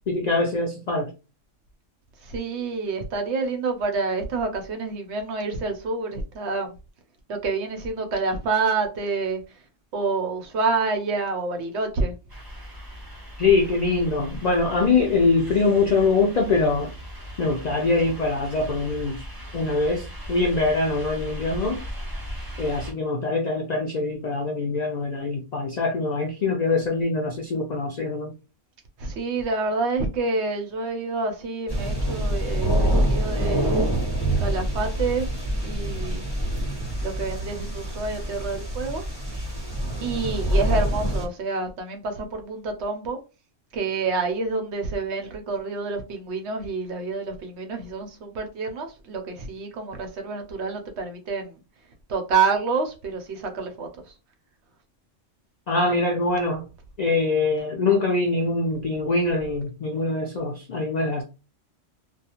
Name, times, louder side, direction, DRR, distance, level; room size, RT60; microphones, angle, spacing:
voice 1, 0.1-1.1 13.4-16.9 17.4-19.3 19.5-21.8 22.6-28.3 55.7-56.7 57.0-61.2, left 3 dB, 70° left, 0.4 m, -23 dB
voice 2, 2.2-6.7 7.3-9.6 9.9-12.1 29.0-33.9 34.4-35.3 35.6-36.2 37.0-39.0 40.0-43.2 43.7-51.6 52.1-53.9, right 4 dB, 70° right, 0.9 m, -28 dB
sound 1, 12.3-22.9, equal, 25° right, 0.6 m, -38 dB
sound 2, 31.7-41.3, right 1 dB, 20° left, 1.0 m, -25 dB
2.4 x 2.3 x 2.8 m
omnidirectional pair, 1.3 m